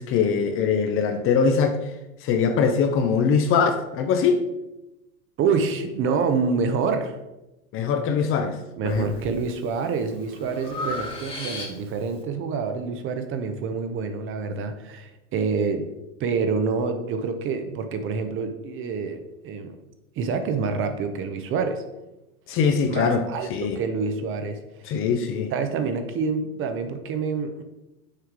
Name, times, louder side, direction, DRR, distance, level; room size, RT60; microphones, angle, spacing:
voice 1, 0.0-1.9 2.2-4.4 7.7-8.6 8.8-9.1 22.5-23.2 23.5-23.8 24.9-25.5, left 6 dB, 30° left, 7 dB, 0.6 m, -22 dB
voice 2, 5.4-7.2 8.8-15.9 16.2-19.8 20.2-21.8 22.9-25.0 25.5-27.6, right 5 dB, 30° right, 7 dB, 0.7 m, -27 dB
Breathing, 8.9-9.4 9.8-12.1, left 2 dB, 15° left, 1.2 m, -35 dB
6.5 x 3.5 x 4.6 m, 0.96 s
hypercardioid pair, 115°, 42 cm